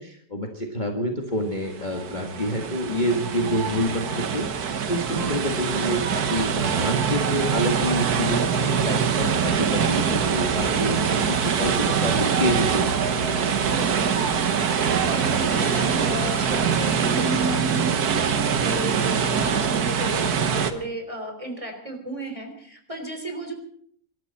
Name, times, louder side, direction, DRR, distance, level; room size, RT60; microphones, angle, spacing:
voice 1, 0.0-4.5 4.9-13.5, left 1 dB, 25° left, 1 dB, 1.9 m, -28 dB
sound 1, 1.7-20.7, right 7 dB, 65° right, 1.6 m, -23 dB
sound 2, 11.1-17.6, left 1 dB, 55° left, 3.9 m, -39 dB
voice 2, 13.7-14.1 15.1-17.7 18.1-23.5, equal, 20° right, 4 dB, 3.5 m, -34 dB
25.5 x 13.5 x 4.2 m, 0.63 s
omnidirectional pair, 1.8 m